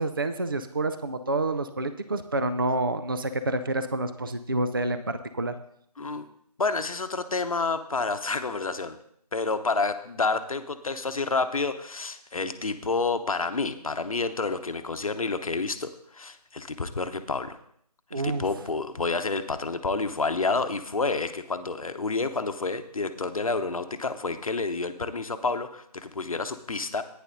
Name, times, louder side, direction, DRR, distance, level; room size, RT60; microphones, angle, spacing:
voice 1, 0.0-5.5 18.1-18.4, right 2 dB, 35° right, 10 dB, 0.4 m, -28 dB
voice 2, 6.6-9.0 9.3-17.6 18.1-27.0, left 3 dB, 60° left, 9 dB, 0.9 m, -29 dB
14.5 x 9.7 x 2.6 m, 0.68 s
figure-of-eight pair, 160°, 21 cm